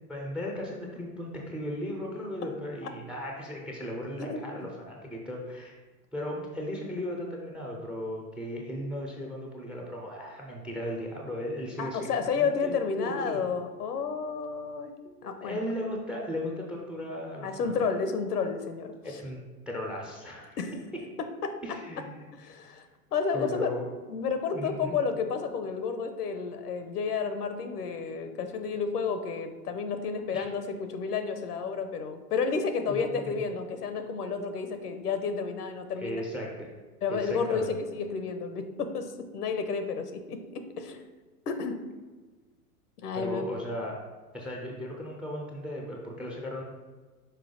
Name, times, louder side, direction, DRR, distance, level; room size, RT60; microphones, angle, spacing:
voice 1, 0.1-5.8 6.1-13.4 15.0-17.7 19.0-20.6 21.6-22.0 22.5-22.8 23.3-23.9 24.5-24.9 30.3-30.5 32.9-33.3 36.0-36.7 37.1-37.7 43.1-44.0 44.3-46.6, left 1 dB, ahead, 0 dB, 0.4 m, -36 dB
voice 2, 11.8-14.9 15.2-15.6 17.4-18.9 20.6-20.7 21.2-21.8 22.3-22.8 23.1-23.7 24.1-36.2 37.0-41.0 41.5-41.8 43.0-43.4, left 5 dB, 75° left, 8 dB, 0.9 m, -31 dB
5.7 x 4.5 x 3.8 m, 1.3 s
hypercardioid pair, 110°, 47 cm